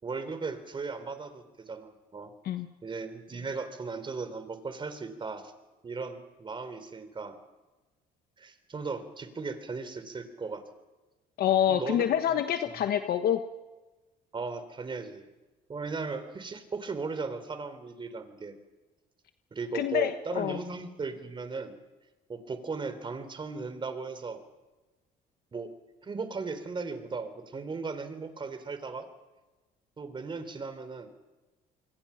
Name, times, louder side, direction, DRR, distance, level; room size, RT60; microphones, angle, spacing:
voice 1, 0.0-2.3 2.8-5.5 5.8-7.4 8.4-10.6 11.7-12.2 14.3-15.3 15.7-18.6 19.5-21.8 22.3-24.4 25.5-25.7 26.0-29.1 30.0-31.1, right 4 dB, 30° right, 10 dB, 3.6 m, -37 dB
voice 2, 11.4-13.4 19.7-20.6, left 10 dB, 65° left, 8 dB, 1.3 m, -27 dB
27.5 x 23.5 x 5.8 m, 1.1 s
cardioid pair, 110°, 17 cm